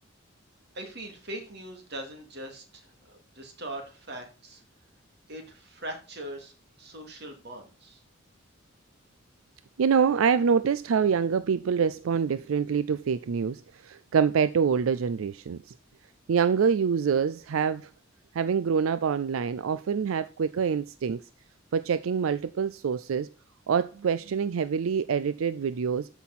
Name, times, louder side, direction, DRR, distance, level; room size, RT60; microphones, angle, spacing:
voice 1, 0.7-4.6 5.3-6.5 6.8-8.0, right 1 dB, 55° right, 2.5 m, -41 dB
voice 2, 9.8-15.7 16.3-17.9 18.3-21.2 21.7-23.3 23.7-26.1, right 6 dB, 90° right, 0.4 m, -26 dB
13.0 x 6.1 x 4.2 m
head